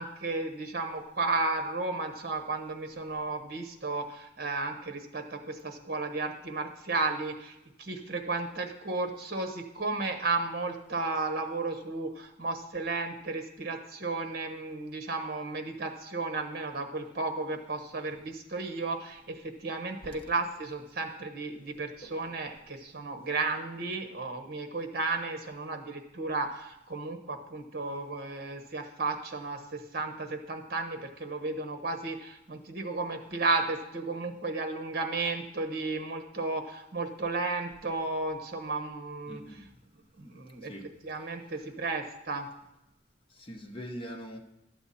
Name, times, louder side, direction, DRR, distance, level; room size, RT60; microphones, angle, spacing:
voice 1, 0.0-39.4 40.2-40.7 41.0-42.5, right 3 dB, 55° right, 5 dB, 1.2 m, -33 dB
voice 2, 39.3-39.7 40.7-40.9 43.4-44.4, equal, 30° left, 2 dB, 1.1 m, -42 dB
12.0 x 8.1 x 4.2 m, 0.84 s
head